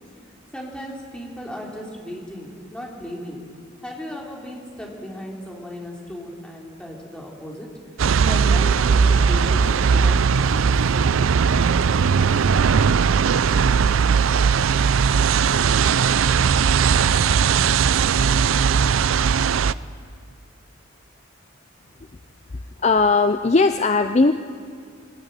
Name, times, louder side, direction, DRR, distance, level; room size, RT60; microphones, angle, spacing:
voice 1, 0.5-3.4 3.8-7.7 8.2-10.8, equal, 5° left, -2 dB, 3.2 m, -36 dB
sound 1, 8.0-19.7, right 6 dB, 80° right, 0.5 m, -18 dB
voice 2, 22.8-24.3, left 3 dB, 35° left, 9 dB, 0.5 m, -18 dB
20.5 x 18.0 x 9.1 m, 2.2 s
head